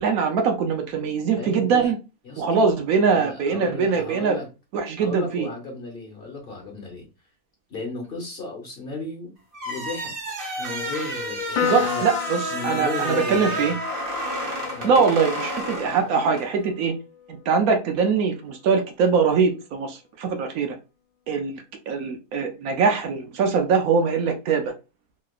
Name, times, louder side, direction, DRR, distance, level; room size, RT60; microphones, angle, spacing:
voice 1, 0.0-2.0 2.4-4.4 4.7-5.5 11.6-13.8 14.8-16.9 17.3-20.7 21.3-24.7, right 5 dB, 75° right, 5 dB, 1.0 m, -22 dB
voice 2, 1.4-1.9 2.2-2.7 3.1-4.5 5.0-7.1 7.7-9.3 9.6-10.1 10.6-12.0 12.5-13.8 14.7-15.1, left 3 dB, 45° left, 1 dB, 0.9 m, -34 dB
sound 1, 9.5-16.5, equal, 45° right, 0.9 m, -31 dB
Piano, 11.6-18.2, left 9 dB, 70° left, 1.1 m, -34 dB
3.2 x 2.9 x 2.3 m, 0.29 s
omnidirectional pair, 1.6 m